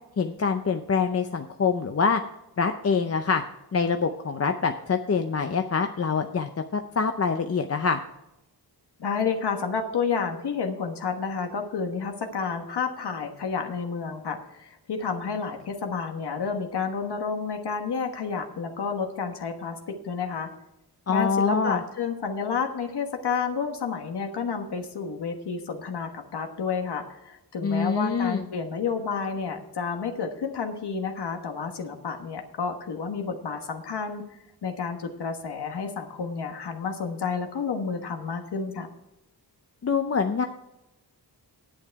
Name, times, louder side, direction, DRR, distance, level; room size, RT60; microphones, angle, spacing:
voice 1, 0.2-2.2 2.6-3.4 3.7-8.0 21.1-21.8 27.6-28.5 39.8-40.5, left 5 dB, 40° left, 6 dB, 0.6 m, -25 dB
voice 2, 9.0-20.5 21.1-34.2 34.6-38.9, left 5 dB, 75° left, 4 dB, 1.4 m, -30 dB
10.5 x 9.0 x 4.7 m, 0.89 s
wide cardioid pair, 165°, 40 cm